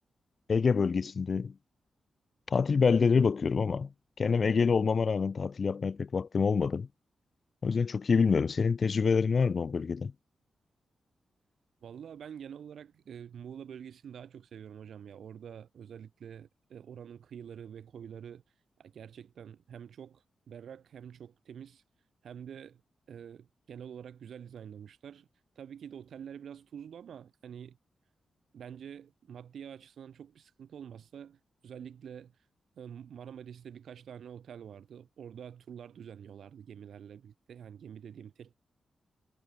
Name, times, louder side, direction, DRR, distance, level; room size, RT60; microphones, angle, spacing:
voice 1, 0.5-1.5 2.5-3.9 4.2-6.9 7.6-10.1, left 5 dB, 40° left, 0.7 m, -26 dB
voice 2, 11.8-18.4 18.8-21.8 22.2-22.8 23.1-25.3 25.6-27.8 28.5-32.3 32.7-38.6, right 8 dB, 75° right, 6.0 m, -47 dB
wide cardioid pair, 170°, 0 cm